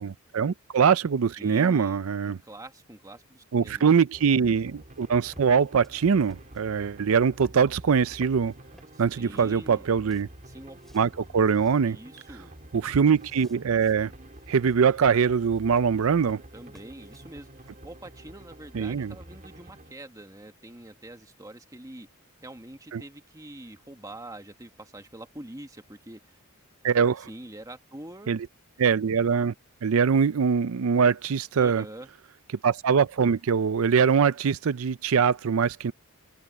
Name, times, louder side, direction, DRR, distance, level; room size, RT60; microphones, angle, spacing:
voice 1, 0.0-2.4 3.5-8.5 9.0-10.3 10.9-12.0 12.7-14.1 14.5-16.4 18.7-19.1 22.9-23.0 26.8-27.3 28.3-28.5 28.8-29.5 29.8-31.8 32.6-35.9, right 6 dB, 65° right, 0.5 m, -23 dB
voice 2, 1.4-3.9 8.9-9.9 10.5-10.8 11.8-12.5 16.5-22.1 22.4-26.4 27.2-28.4 31.6-32.1, right 1 dB, 15° right, 1.6 m, -45 dB
sound 1, 4.1-19.9, right 1 dB, 35° right, 2.8 m, -48 dB
sound 2, 4.9-9.6 9.9-11.1 11.4-11.8 12.2-12.3 12.7-14.0 14.3-14.8 15.5-17.7, equal, ahead, 3.1 m, -56 dB
open air
head